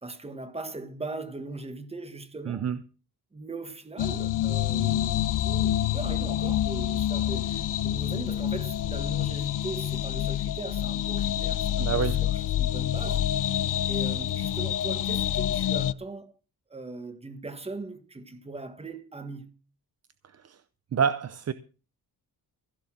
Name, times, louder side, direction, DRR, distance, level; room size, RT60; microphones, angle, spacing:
voice 1, 0.0-2.7 3.3-13.3 13.9-16.3 16.7-19.5, right 3 dB, 15° right, 1.5 m, -39 dB
voice 2, 2.5-2.8 11.8-12.2 20.4-20.6 20.9-21.5, right 7 dB, 40° right, 0.7 m, -27 dB
sound 1, 4.0-15.9, left 11 dB, 55° left, 0.6 m, -27 dB
16.0 x 7.0 x 7.5 m
wide cardioid pair, 170°, 38 cm